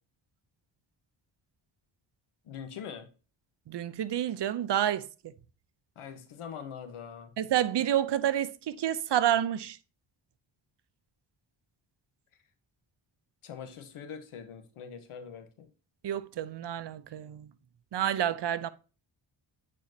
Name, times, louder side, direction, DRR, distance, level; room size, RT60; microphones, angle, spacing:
voice 1, 2.4-3.1 5.9-7.3 13.4-15.7, left 7 dB, 85° left, 1.3 m, -43 dB
voice 2, 3.7-5.1 7.4-9.8 16.0-17.5 17.9-18.7, right 11 dB, 55° right, 0.7 m, -29 dB
9.2 x 4.3 x 2.8 m
cardioid pair, 80°, 50 cm